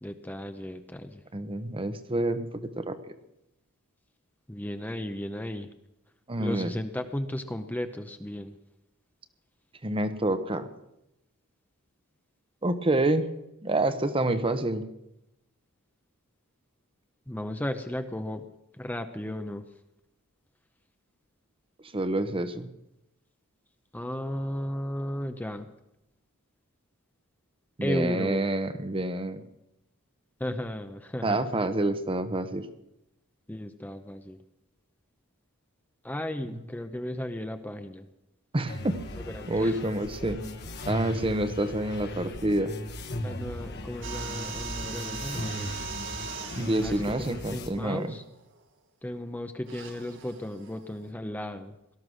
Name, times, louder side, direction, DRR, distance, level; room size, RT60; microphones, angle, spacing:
voice 1, 0.0-1.2 4.5-5.7 6.4-8.5 17.3-18.4 18.8-19.6 23.9-25.7 27.8-28.4 30.4-31.4 33.5-34.4 36.0-38.1 39.3-39.8 43.2-45.7 46.8-47.0 47.3-48.2 49.0-51.7, left 1 dB, 10° left, 7 dB, 0.7 m, -35 dB
voice 2, 1.3-3.1 6.3-6.7 9.8-10.7 12.6-13.3 13.6-14.8 21.9-22.7 27.8-29.4 31.2-32.7 36.5-36.6 38.5-39.0 39.5-40.4 40.9-42.7 46.5-48.2, right 1 dB, 25° right, 11 dB, 0.9 m, -28 dB
sound 1, 38.7-47.7, left 1 dB, 50° left, 1.4 m, -37 dB
sound 2, 44.0-48.6 49.6-51.1, right 5 dB, 60° right, 1.7 m, -40 dB
18.0 x 12.5 x 6.3 m, 0.87 s
head